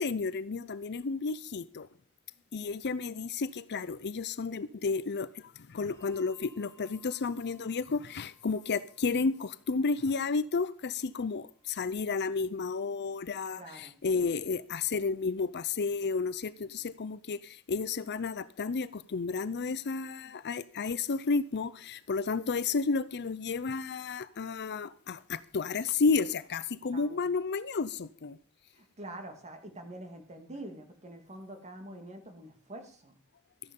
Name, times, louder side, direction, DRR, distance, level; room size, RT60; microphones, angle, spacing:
voice 1, 0.0-1.9 2.5-5.3 5.7-28.4, left 4 dB, 50° left, 0.6 m, -32 dB
Bell, 5.9-12.8, right 3 dB, 15° left, 2.6 m, -66 dB
voice 2, 13.6-13.9 26.9-27.3 28.8-33.1, right 1 dB, 30° right, 2.4 m, -45 dB
13.5 x 10.5 x 5.4 m
head